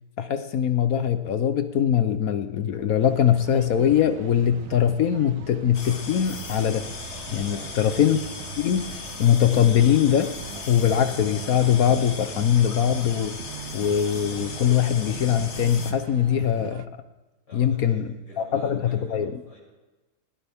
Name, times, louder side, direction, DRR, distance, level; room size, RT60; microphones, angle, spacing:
voice 1, 0.2-6.9 7.3-8.2 8.6-8.9 9.2-10.3 10.7-13.4 13.7-16.9 17.5-19.4, left 9 dB, 65° left, 10 dB, 1.1 m, -22 dB
sound 1, 3.0-16.9, right 11 dB, 65° right, 0.9 m, -41 dB
sound 2, 5.7-15.9, left 4 dB, 45° left, 1.4 m, -37 dB
voice 2, 7.5-8.1 17.5-19.6, left 1 dB, 90° left, -5 dB, 7.6 m, -49 dB
19.5 x 16.5 x 3.5 m, 1.2 s
omnidirectional pair, 1.8 m